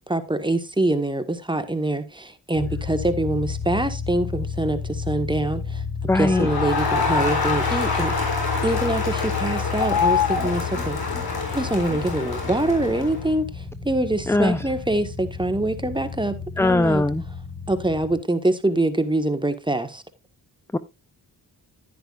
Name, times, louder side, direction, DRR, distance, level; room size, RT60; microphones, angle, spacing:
voice 1, 0.0-8.1 8.6-11.0 11.5-13.5 13.8-17.1 17.7-20.0, right 2 dB, 10° right, 1.5 m, -24 dB
sound 1, 2.5-18.2, left 5 dB, 20° left, 6.9 m, -32 dB
voice 2, 6.1-6.5 14.3-14.6 16.6-17.2 20.7-20.8, left 2 dB, 5° left, 0.5 m, -20 dB
Crowd, 6.2-13.3, left 4 dB, 60° left, 3.7 m, -26 dB
10.5 x 10.5 x 2.5 m
cardioid pair, 50°, 41 cm